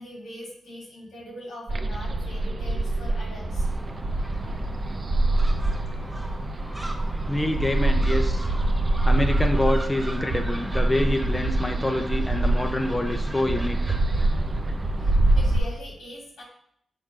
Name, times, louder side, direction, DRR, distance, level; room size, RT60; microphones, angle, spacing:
voice 1, 0.0-3.7 5.9-6.2 8.6-8.7 15.0-16.4, left 1 dB, 90° left, -3 dB, 2.3 m, -42 dB
sound 1, 1.7-15.6, right 2 dB, 50° right, 0.6 m, -25 dB
Gull seagull, 3.4-15.8, right 1 dB, 10° right, 1.0 m, -37 dB
voice 2, 7.3-8.5 9.0-13.9, left 1 dB, 20° left, 4 dB, 0.7 m, -26 dB
6.6 x 4.3 x 3.8 m, 0.69 s
cardioid pair, 50°, 0 cm